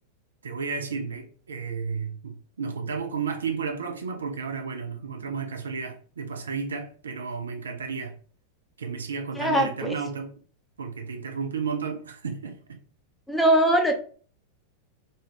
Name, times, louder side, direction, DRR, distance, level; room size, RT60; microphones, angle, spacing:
voice 1, 0.4-8.2 8.8-10.3 10.8-12.8, right 5 dB, 70° right, 0.4 m, -32 dB
voice 2, 9.3-9.9 13.3-13.9, right 1 dB, 5° left, 0.6 m, -21 dB
2.6 x 2.3 x 3.3 m
figure-of-eight pair, 90°, 0 cm